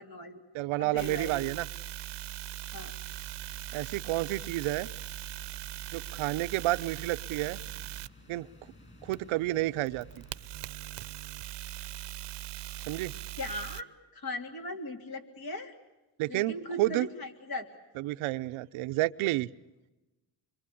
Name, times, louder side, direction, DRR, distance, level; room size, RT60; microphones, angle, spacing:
voice 1, 0.0-0.4 0.8-1.5 2.7-2.9 13.4-13.9 14.1-15.7 16.3-17.7, left 1 dB, 50° left, 5 dB, 3.4 m, -38 dB
voice 2, 0.5-1.7 3.7-4.9 5.9-7.6 8.3-8.5 9.0-10.2 12.9-13.1 16.2-17.1 18.0-19.5, right 17 dB, 90° right, 12 dB, 0.9 m, -30 dB
sound 1, 1.0-8.1 9.1-13.8, right 14 dB, 60° right, 0.9 m, -41 dB
sound 2, 3.0-10.5, left 2 dB, 25° left, 7.5 m, -56 dB
26.5 x 23.5 x 8.6 m, 1.1 s
cardioid pair, 115°, 47 cm